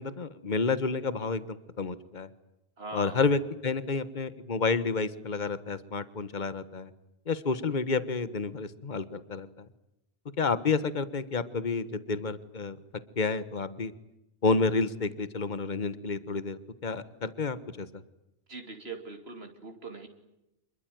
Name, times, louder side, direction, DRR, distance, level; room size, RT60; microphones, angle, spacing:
voice 1, 0.0-2.3 2.9-6.9 7.3-9.7 10.4-12.8 13.2-13.9 14.4-17.9, left 4 dB, 45° left, 14 dB, 1.5 m, -30 dB
voice 2, 2.8-3.2 18.5-20.1, right 3 dB, 65° right, 5 dB, 3.0 m, -41 dB
26.5 x 22.5 x 9.3 m, 0.90 s
omnidirectional pair, 1.1 m